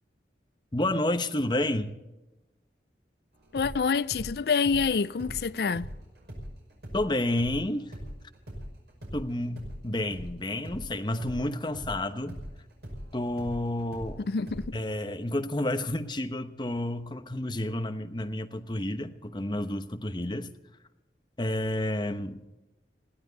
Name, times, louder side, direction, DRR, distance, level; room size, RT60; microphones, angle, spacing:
voice 1, 0.7-1.9 6.9-7.9 9.1-12.4 13.1-14.2 14.7-20.5 21.4-22.4, left 1 dB, 25° left, 1.0 m, -30 dB
sound 1, 3.4-10.3 10.6-14.9, equal, 65° right, 5.5 m, -41 dB
voice 2, 3.5-5.9 14.3-14.8, left 5 dB, 60° left, 0.4 m, -27 dB
22.0 x 15.0 x 4.1 m
head